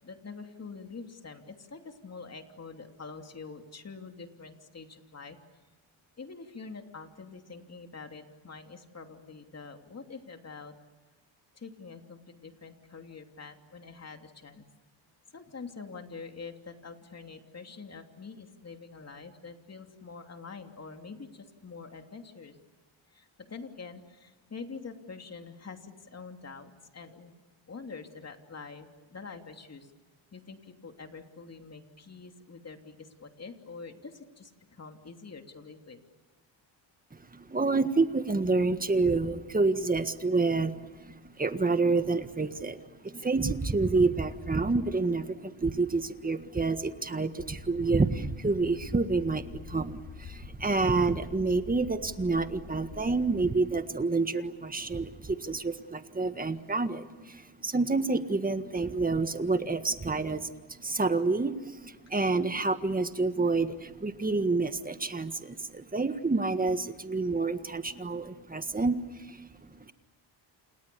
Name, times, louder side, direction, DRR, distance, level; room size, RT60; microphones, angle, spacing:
voice 1, 0.0-5.4 6.2-10.7 11.5-14.6 15.3-22.6 23.1-27.4 27.7-29.9 30.3-36.0 51.3-51.4 67.6-67.9, left 4 dB, 35° left, 5 dB, 3.0 m, -45 dB
voice 2, 37.1-69.9, right 3 dB, 20° right, 9 dB, 1.7 m, -28 dB
sound 1, 47.4-53.5, left 7 dB, 60° left, 3.1 m, -46 dB
29.0 x 28.5 x 7.0 m, 1.3 s
cardioid pair, 105°, 46 cm